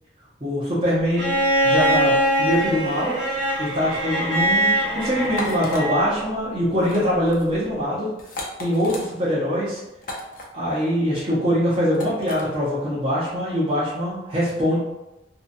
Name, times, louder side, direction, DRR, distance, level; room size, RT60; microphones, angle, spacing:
voice 1, 0.4-1.4 1.6-3.1 3.6-8.1 8.6-9.8 10.5-14.8, equal, 30° right, -10 dB, 0.6 m, -23 dB
Bowed string instrument, 1.2-6.2 7.7-7.8, right 1 dB, 65° right, 1.1 m, -22 dB
sound 1, 5.2-5.8 6.7-7.0 7.3-7.5 8.2-9.1 10.0-10.5 11.9-12.4, left 1 dB, 45° left, 0.5 m, -34 dB
2.6 x 2.1 x 2.5 m, 0.96 s
head